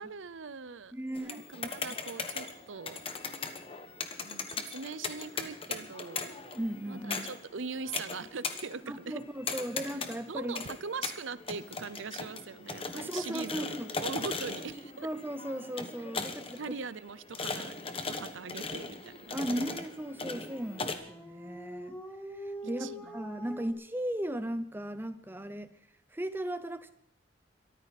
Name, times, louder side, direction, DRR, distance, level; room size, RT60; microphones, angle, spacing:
voice 1, 0.0-3.0 4.2-6.3 6.9-9.2 9.5-9.6 10.3-13.7 14.0-15.1 16.6-19.7 22.8-23.2, right 4 dB, 75° right, 0.7 m, -41 dB
voice 2, 0.9-1.7 6.5-7.3 8.9-10.7 12.9-13.9 15.0-16.8 19.3-22.0 22.3-25.7 26.1-26.9, right 1 dB, 10° right, 0.7 m, -37 dB
sound 1, 1.2-20.9, left 4 dB, 25° left, 1.2 m, -39 dB
Dog, 20.2-23.7, right 1 dB, 10° left, 1.6 m, -44 dB
23.0 x 14.0 x 4.2 m
head